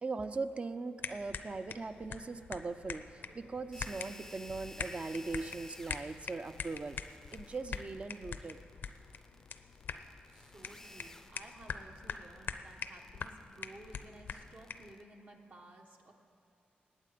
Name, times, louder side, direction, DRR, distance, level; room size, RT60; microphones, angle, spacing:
voice 1, 0.0-7.0 7.3-8.6, right 3 dB, 35° right, 11 dB, 0.5 m, -40 dB
sound 1, 1.0-14.9, left 6 dB, 70° left, 0.5 m, -45 dB
sound 2, 3.7-15.0, left 1 dB, 15° left, 0.5 m, -55 dB
voice 2, 10.3-16.1, right 1 dB, 55° right, 2 dB, 1.3 m, -55 dB
19.5 x 8.5 x 5.1 m, 2.4 s
wide cardioid pair, 95°, 3 cm